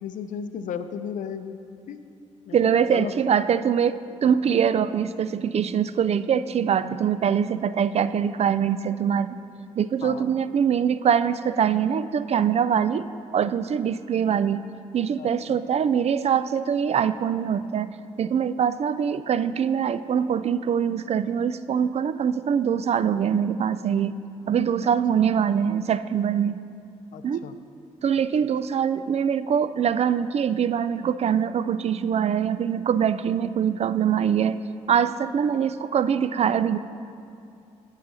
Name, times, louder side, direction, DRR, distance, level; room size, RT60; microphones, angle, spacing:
voice 1, 0.0-1.6 1.9-2.0 2.5-3.1 10.0-10.3 15.2-15.6 24.8-24.9 27.1-27.5, left 7 dB, 75° left, 10 dB, 0.5 m, -35 dB
voice 2, 2.5-9.4 9.8-14.6 14.9-24.1 24.5-26.6 27.2-27.5 28.0-34.6 34.9-36.8, right 8 dB, 50° right, 14 dB, 0.4 m, -23 dB
17.0 x 5.7 x 4.1 m, 2.6 s
supercardioid pair, 60°, 13 cm